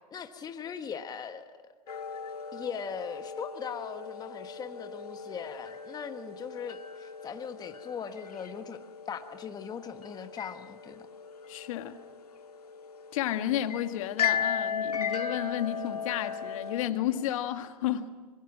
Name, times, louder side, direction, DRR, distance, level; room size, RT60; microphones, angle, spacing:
voice 1, 0.1-1.6 2.5-8.8 9.1-11.1, left 7 dB, 20° left, 1.3 m, -40 dB
sound 1, 1.9-16.9, left 7 dB, 90° left, 1.6 m, -37 dB
voice 2, 11.5-12.0 13.1-18.1, left 12 dB, 60° left, 1.7 m, -32 dB
25.0 x 22.0 x 6.1 m
hypercardioid pair, 110°, 19 cm